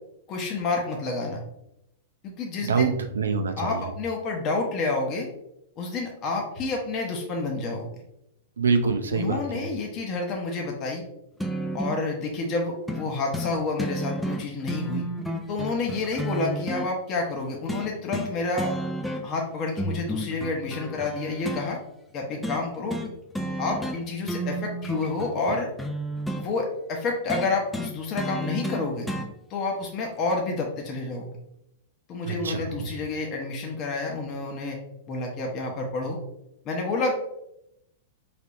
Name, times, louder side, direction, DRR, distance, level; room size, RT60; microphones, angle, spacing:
voice 1, 0.3-1.4 2.2-2.9 3.6-5.3 5.8-7.9 9.1-11.0 11.7-15.0 15.5-18.7 19.2-21.8 22.1-23.0 23.6-25.7 26.3-29.1 29.5-31.3 32.1-34.8 35.1-36.2 36.6-37.1, left 3 dB, 40° left, 0 dB, 0.8 m, -29 dB
voice 2, 2.6-3.9 8.6-9.7 32.2-32.9, right 5 dB, 90° right, 6 dB, 0.5 m, -26 dB
sound 1, 11.4-12.0 12.9-13.1 13.3-13.5 13.8-16.9 17.7-18.3 18.6-19.4 19.8-21.6 22.4-22.6 22.9-23.1 23.3-24.0 24.2-26.5 27.3-29.3 30.3-30.4, right 1 dB, 5° left, 0.5 m, -31 dB
4.3 x 3.3 x 2.6 m, 0.82 s
hypercardioid pair, 110°, 0 cm